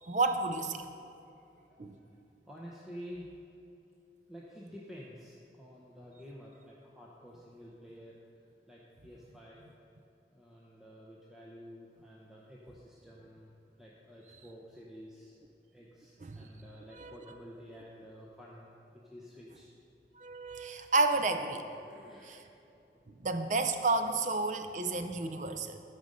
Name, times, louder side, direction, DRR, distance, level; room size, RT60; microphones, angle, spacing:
voice 1, 0.0-0.9 1.8-2.0 16.2-16.5 16.9-17.2 20.2-21.6 22.2-22.4 23.2-25.8, right 3 dB, 45° right, 7 dB, 0.5 m, -31 dB
voice 2, 1.7-2.2 2.5-3.3 4.3-8.2 8.7-9.6 10.3-13.5 13.8-15.3 15.7-19.7 21.7-22.5, equal, 5° right, -5 dB, 0.7 m, -50 dB
13.0 x 5.2 x 5.1 m, 2.7 s
head